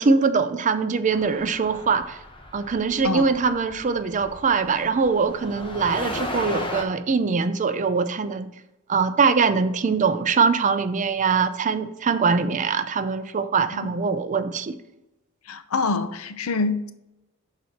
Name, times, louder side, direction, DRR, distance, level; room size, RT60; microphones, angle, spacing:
voice 1, 0.0-2.2 2.5-8.5 8.9-14.8, right 5 dB, 35° right, 0.5 m, -22 dB
sound 1, 1.1-6.8, left 1 dB, 25° left, 0.8 m, -36 dB
voice 2, 15.5-16.9, left 3 dB, 80° left, 0.6 m, -26 dB
6.1 x 4.1 x 6.3 m
head